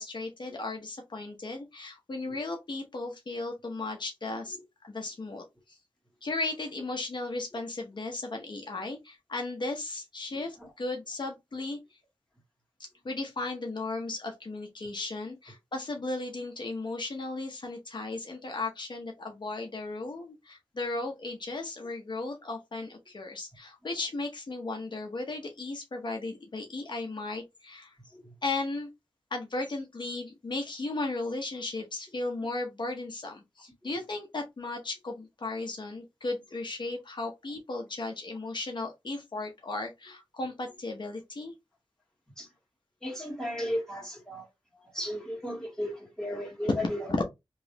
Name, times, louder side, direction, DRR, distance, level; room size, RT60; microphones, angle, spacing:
voice 1, 0.0-4.6 4.8-5.8 6.2-12.0 12.8-28.0 28.4-28.9 29.3-41.5 47.1-47.2, left 2 dB, 60° left, 0.7 m, -35 dB
voice 2, 43.0-44.5 44.9-47.2, equal, 5° left, 1.8 m, -35 dB
3.1 x 3.0 x 2.8 m
wide cardioid pair, 95°, 9 cm